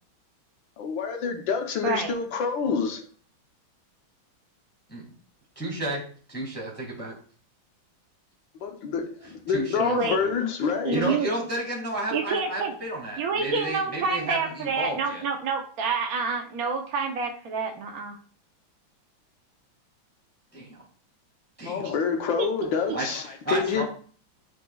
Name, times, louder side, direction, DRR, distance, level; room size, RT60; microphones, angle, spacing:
voice 1, 0.8-3.0 8.6-11.1 21.6-23.8, left 6 dB, 70° left, 1.6 m, -27 dB
voice 2, 5.6-6.0 6.3-7.1 9.2-10.3 10.6-15.2 20.5-20.8 21.6-22.0 22.9-23.8, right 1 dB, 5° left, 1.8 m, -32 dB
voice 3, 9.8-10.2 10.8-11.5 12.1-12.7 13.2-18.2 21.8-21.9 22.4-22.5 22.9-23.0, right 4 dB, 55° right, 1.1 m, -28 dB
11.0 x 4.4 x 2.3 m
omnidirectional pair, 2.2 m